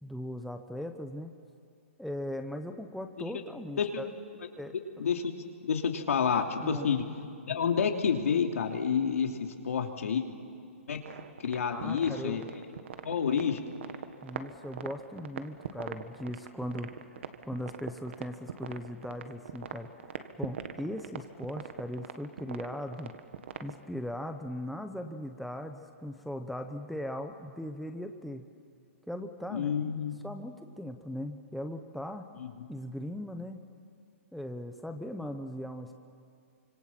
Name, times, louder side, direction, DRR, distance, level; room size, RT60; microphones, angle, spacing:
voice 1, 0.0-1.3 2.0-4.1 4.6-4.7 6.6-6.9 11.7-12.4 14.2-19.9 20.4-23.1 23.6-28.5 29.1-32.3 32.7-33.6 34.3-36.0, left 1 dB, ahead, 5 dB, 0.7 m, -39 dB
voice 2, 5.0-5.3 5.6-7.0 7.4-10.2 10.9-11.0 11.4-12.4 13.0-13.6 29.5-30.2 32.4-32.5, left 7 dB, 85° left, 3 dB, 3.1 m, -29 dB
sound 1, 11.1-23.8, right 8 dB, 55° right, 1.7 m, -42 dB
29.5 x 26.0 x 7.5 m, 2.4 s
hypercardioid pair, 175°, 7 cm